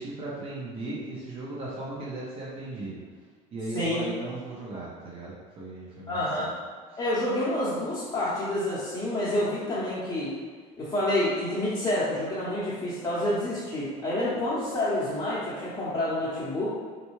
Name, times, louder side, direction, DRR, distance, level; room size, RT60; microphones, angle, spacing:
voice 1, 0.0-3.0 3.5-6.5 6.9-7.0, right 2 dB, 35° right, -6 dB, 0.8 m, -37 dB
voice 2, 3.7-4.1 6.1-6.5 7.0-10.3 10.8-16.7, left 1 dB, 20° left, -10 dB, 0.8 m, -28 dB
4.1 x 2.2 x 3.1 m, 1.5 s
cardioid pair, 120°, 15 cm